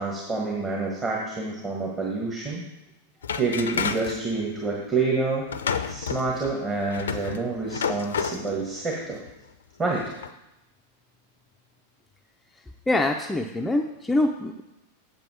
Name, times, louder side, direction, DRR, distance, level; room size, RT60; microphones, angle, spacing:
voice 1, 0.0-2.6 3.4-5.4 5.9-9.2 9.8-10.1, right 3 dB, 20° right, -3 dB, 1.4 m, -28 dB
sound 1, 3.2-4.2 5.5-8.5 9.1-9.3 9.9-10.3, left 6 dB, 65° left, 0.5 m, -30 dB
voice 2, 12.5-14.6, left 2 dB, 10° left, 3 dB, 0.5 m, -25 dB
7.9 x 7.4 x 4.8 m, 0.92 s
figure-of-eight pair, 90°, 0 cm